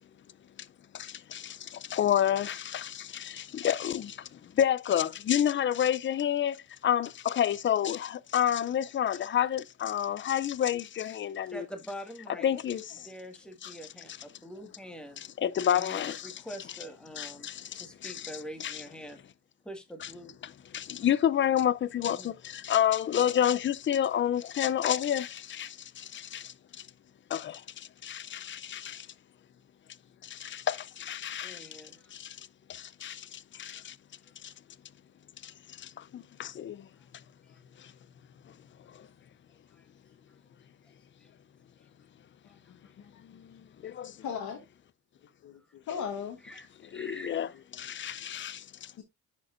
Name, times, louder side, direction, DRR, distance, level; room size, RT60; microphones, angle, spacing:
voice 1, 0.9-11.6 12.4-13.1 13.6-13.7 15.4-16.3 17.2-18.1 18.6-18.8 20.7-26.5 27.3-29.1 30.2-31.7 32.1-32.4 32.7-34.0 34.4-34.5 35.4-36.9 39.0-39.1 43.3-44.1 46.9-47.5 47.8-48.6, left 10 dB, 40° left, 0.5 m, -30 dB
voice 2, 9.2-9.5 11.5-12.6 13.0-15.2 15.7-19.2 19.6-20.3 22.1-22.3 28.8-28.9 31.4-32.1 35.4-35.5 37.0-37.1 37.4-37.9 39.7-39.9 40.3-40.4 41.2-41.3 42.5-42.9 45.6-45.7 46.4-47.6, equal, 5° left, 1.8 m, -46 dB
voice 3, 44.2-44.6 45.4-46.4 49.0-49.1, left 7 dB, 75° left, 1.4 m, -37 dB
10.0 x 5.1 x 2.5 m
cardioid pair, 90°, 30 cm